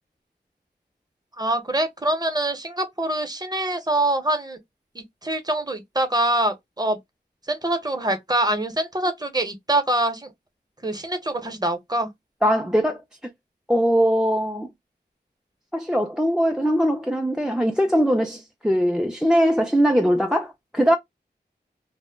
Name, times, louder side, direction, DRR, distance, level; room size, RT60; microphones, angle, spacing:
voice 1, 1.4-4.6 4.9-7.0 7.4-10.3 10.8-12.1, right 1 dB, 20° right, 0.8 m, -24 dB
voice 2, 12.4-13.0 13.7-14.7 15.7-21.0, equal, 5° right, 0.4 m, -21 dB
2.2 x 2.0 x 3.3 m
wide cardioid pair, 55°, 18 cm